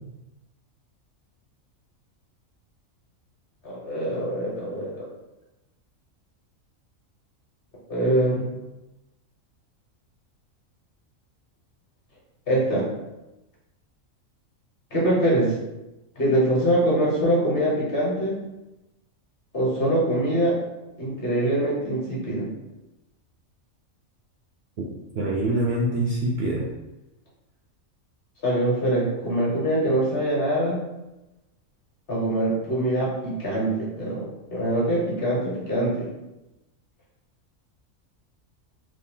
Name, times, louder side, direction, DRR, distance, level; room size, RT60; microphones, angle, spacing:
voice 1, 3.6-5.1 7.9-8.5 12.5-12.9 14.9-15.5 16.2-18.4 19.5-20.6 21.0-22.5 28.4-30.8 32.1-34.2 34.5-36.1, right 1 dB, 45° left, -5 dB, 1.2 m, -23 dB
voice 2, 25.1-26.7, right 1 dB, 65° right, -2 dB, 0.7 m, -24 dB
3.2 x 2.4 x 3.7 m, 0.98 s
omnidirectional pair, 1.4 m